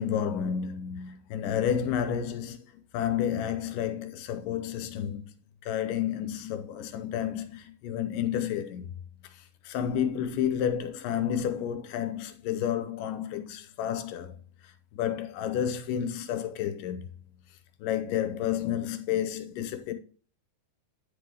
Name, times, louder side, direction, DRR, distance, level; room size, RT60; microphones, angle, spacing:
voice 1, 0.0-5.3 5.6-8.9 9.6-14.4 15.0-17.1 17.8-19.9, left 9 dB, 85° left, 2.4 m, -30 dB
10.0 x 3.7 x 4.8 m
omnidirectional pair, 3.8 m